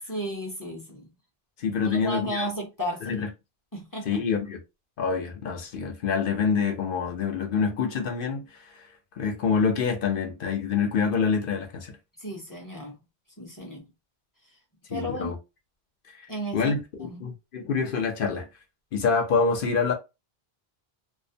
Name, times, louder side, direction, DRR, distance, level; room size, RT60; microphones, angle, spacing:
voice 1, 0.1-1.1 1.8-3.2 3.7-4.1 12.2-12.9 13.4-13.9 14.9-15.4 16.3-16.7 17.0-17.2, equal, 25° left, 0.6 m, -33 dB
voice 2, 1.6-2.5 3.0-3.3 4.1-4.6 5.0-8.9 9.2-12.0 14.9-15.4 16.2-16.3 16.5-18.5 18.9-19.9, left 5 dB, 60° left, 0.7 m, -26 dB
2.4 x 2.1 x 2.6 m
omnidirectional pair, 1.1 m